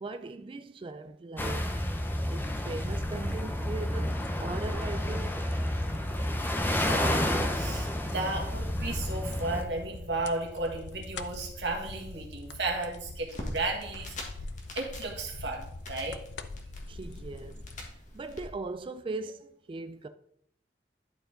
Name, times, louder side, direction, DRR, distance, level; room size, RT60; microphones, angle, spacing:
voice 1, 0.0-1.9 2.3-5.5 16.9-17.7 18.1-20.1, right 3 dB, 30° right, 0.3 m, -39 dB
sound 1, 1.4-9.6, left 1 dB, 10° left, 0.7 m, -30 dB
sound 2, 3.2-17.9, left 3 dB, 75° left, 0.5 m, -45 dB
voice 2, 6.7-14.2 14.8-16.2, right 2 dB, 75° right, 1.7 m, -34 dB
sound 3, 13.3-18.4, left 1 dB, 45° left, 1.5 m, -44 dB
11.0 x 4.7 x 3.8 m
head